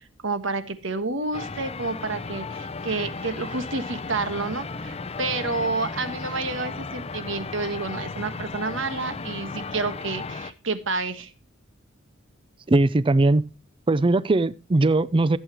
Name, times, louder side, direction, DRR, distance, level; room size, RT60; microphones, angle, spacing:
voice 1, 0.2-11.3, right 3 dB, 65° right, 1.3 m, -29 dB
sound 1, 1.3-10.5, left 4 dB, 30° left, 0.6 m, -35 dB
voice 2, 12.7-13.4 13.9-15.4, right 2 dB, 25° right, 0.4 m, -20 dB
15.0 x 8.1 x 2.9 m
head